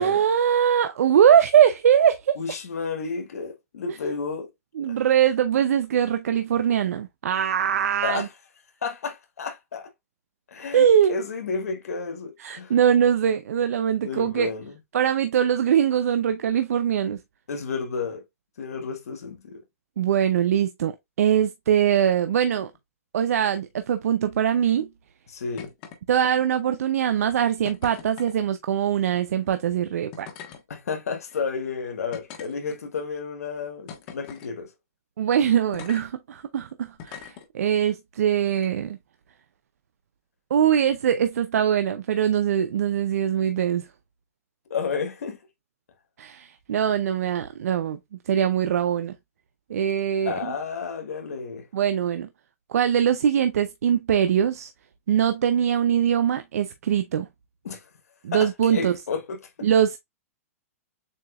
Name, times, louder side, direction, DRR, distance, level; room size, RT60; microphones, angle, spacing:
voice 1, 0.0-2.4 4.8-8.3 10.7-11.2 12.4-14.5 14.9-17.2 20.0-20.9 21.2-22.7 23.1-24.9 26.1-30.3 35.2-39.0 40.5-43.9 46.2-48.0 48.3-49.1 49.7-50.3 51.7-52.3 52.7-54.7 55.1-57.3 58.2-58.9 59.6-60.0, right 9 dB, 75° right, 0.6 m, -22 dB
voice 2, 2.4-4.5 4.9-5.0 8.0-8.3 8.8-9.9 10.5-12.7 14.0-14.8 17.5-18.2 18.6-19.6 25.3-25.7 30.7-34.7 44.7-45.4 50.2-51.7 57.6-57.9 58.3-59.7, left 5 dB, 90° left, 1.4 m, -31 dB
sound 1, 25.6-26.0 26.2-26.7 27.6-28.3 29.4-29.6 30.1-30.6 31.3-31.4 32.1-33.0 33.9-34.5 35.7-36.0 37.0-37.4 38.5-38.7, left 8 dB, 40° left, 1.4 m, -41 dB
7.2 x 2.8 x 2.3 m
hypercardioid pair, 150°, 8 cm